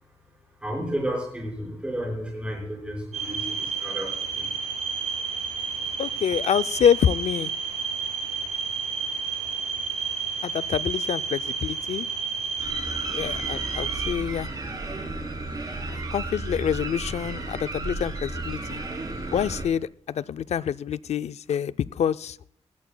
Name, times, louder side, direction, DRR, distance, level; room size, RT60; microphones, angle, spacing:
voice 1, 0.0-5.9, equal, 10° right, 0 dB, 4.8 m, -34 dB
sound 1, 3.1-14.1, right 5 dB, 90° right, 5.5 m, -31 dB
voice 2, 6.0-7.5 10.4-12.1 13.1-14.5 15.9-18.8 19.3-22.4, left 8 dB, 70° left, 15 dB, 0.4 m, -26 dB
sound 2, 12.6-19.6, right 2 dB, 35° right, 2.8 m, -33 dB
18.5 x 14.0 x 2.2 m, 0.62 s
wide cardioid pair, 175°, 12 cm